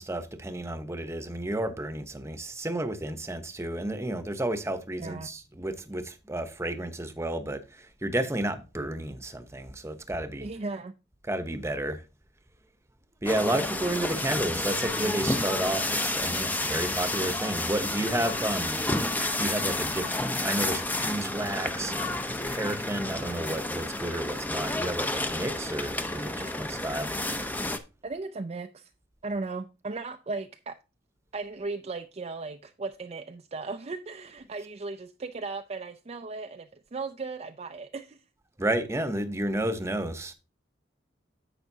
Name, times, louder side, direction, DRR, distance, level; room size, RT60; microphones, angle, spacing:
voice 1, 0.0-10.5 11.3-12.0 13.2-18.8 19.4-20.1 20.4-27.1 38.6-40.3, right 1 dB, 15° right, 0.9 m, -32 dB
voice 2, 5.0-5.3 10.4-10.9 28.0-28.9 29.2-30.8 31.3-38.2, right 3 dB, 35° right, 0.5 m, -36 dB
sound 1, 13.3-27.8, left 2 dB, 10° left, 0.7 m, -30 dB
10.5 x 7.9 x 2.7 m
head